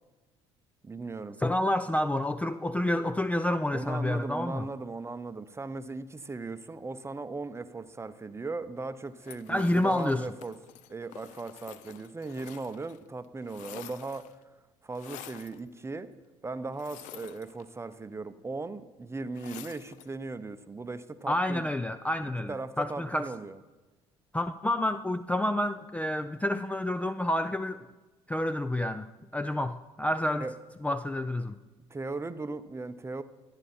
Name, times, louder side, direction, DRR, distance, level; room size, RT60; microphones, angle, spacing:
voice 1, 0.8-1.4 3.7-10.5 10.9-14.4 14.8-16.1 16.4-21.6 22.5-23.6 30.4-30.5 31.9-33.2, right 3 dB, 20° right, 13 dB, 0.7 m, -38 dB
voice 2, 1.4-4.7 9.5-10.3 21.3-23.3 24.3-27.9 28.3-29.1 29.3-30.5 30.8-31.6, left 1 dB, 10° left, 12 dB, 0.4 m, -29 dB
sound 1, 9.2-13.0 13.2-14.4 14.9-15.6 16.7-17.9 19.3-20.1, left 13 dB, 65° left, 0.5 m, -49 dB
12.5 x 9.7 x 4.3 m, 1.2 s
hypercardioid pair, 60°, 14 cm